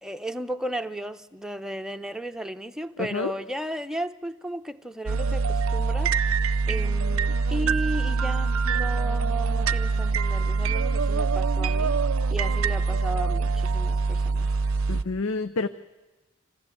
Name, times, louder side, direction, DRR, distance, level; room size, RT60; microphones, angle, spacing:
voice 1, 0.0-6.1 6.7-12.0 12.3-14.5, right 1 dB, 5° right, 0.7 m, -34 dB
voice 2, 3.0-3.3 14.9-15.7, left 3 dB, 85° left, 0.7 m, -28 dB
sound 1, 5.1-15.0, right 4 dB, 75° right, 0.6 m, -24 dB
26.5 x 15.0 x 8.4 m
head